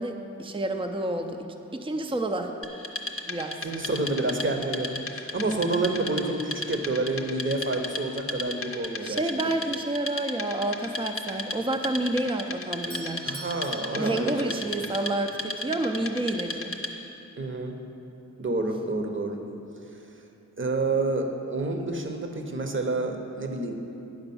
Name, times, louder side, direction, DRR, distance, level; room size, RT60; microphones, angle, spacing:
voice 1, 0.0-1.4 1.7-2.5 3.3-3.6 9.0-13.4 14.0-16.7, right 2 dB, 20° right, 5 dB, 0.5 m, -29 dB
Wood, 2.6-17.2, left 2 dB, 45° left, 0.7 m, -36 dB
voice 2, 3.6-9.2 13.2-14.9 17.4-17.8 18.4-19.4 20.6-23.7, right 2 dB, 40° right, 4 dB, 0.9 m, -29 dB
Doorbell, 12.5-15.3, right 3 dB, 80° right, 0.8 m, -46 dB
10.5 x 4.9 x 7.0 m, 2.8 s
wide cardioid pair, 100°, 30 cm